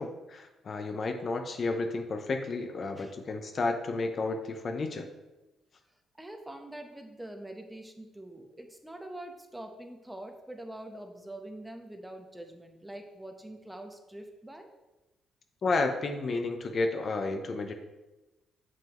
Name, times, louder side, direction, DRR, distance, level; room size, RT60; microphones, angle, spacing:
voice 1, 0.0-5.1 15.6-17.7, left 3 dB, 45° left, 6 dB, 0.6 m, -31 dB
voice 2, 6.1-14.7, right 1 dB, 10° right, 4 dB, 0.9 m, -44 dB
7.0 x 6.1 x 3.0 m, 1.1 s
cardioid pair, 90°, 0 cm